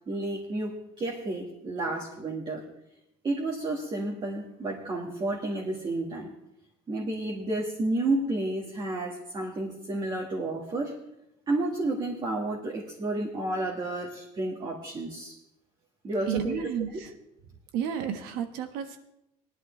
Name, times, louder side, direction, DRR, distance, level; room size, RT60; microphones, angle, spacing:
voice 1, 0.1-2.6 3.2-6.3 6.9-10.9 11.5-15.4 16.0-16.6 16.9-17.0, right 2 dB, 30° right, -2 dB, 1.7 m, -31 dB
voice 2, 16.3-17.1 17.7-19.0, right 8 dB, 80° right, 7 dB, 1.4 m, -31 dB
18.5 x 11.0 x 3.3 m, 0.85 s
cardioid pair, 135°, 16 cm